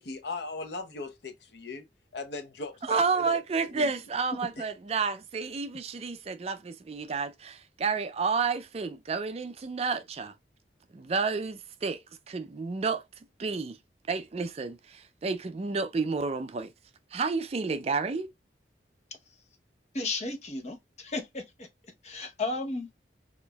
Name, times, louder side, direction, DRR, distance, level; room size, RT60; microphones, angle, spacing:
voice 1, 0.0-1.8 2.1-3.4 3.7-3.9 4.6-4.7, left 3 dB, 70° left, 0.7 m, -38 dB
voice 2, 2.8-10.3 10.9-12.0 12.3-13.0 13.4-13.8 14.1-16.7 17.1-18.3, right 4 dB, 35° right, 0.4 m, -30 dB
voice 3, 19.9-21.7 22.0-22.9, left 3 dB, 40° left, 0.9 m, -34 dB
5.0 x 2.5 x 2.3 m
head